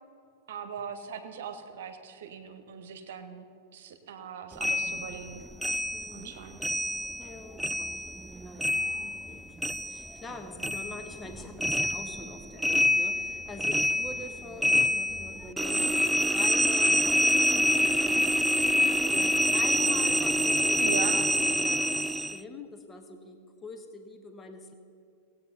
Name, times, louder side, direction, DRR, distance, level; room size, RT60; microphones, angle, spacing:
voice 1, 0.5-3.4 3.7-5.4 6.1-6.6 20.8-21.2, right 7 dB, 65° right, 8 dB, 1.1 m, -40 dB
sound 1, 4.6-7.3 7.6-10.3 10.6-22.4, equal, 5° right, 0.3 m, -26 dB
voice 2, 5.9-6.3 7.2-8.8 9.3-9.5 9.9-18.3 18.6-24.7, left 3 dB, 20° left, 5 dB, 1.1 m, -44 dB
17.0 x 8.5 x 4.1 m, 2.5 s
figure-of-eight pair, 95°, 0 cm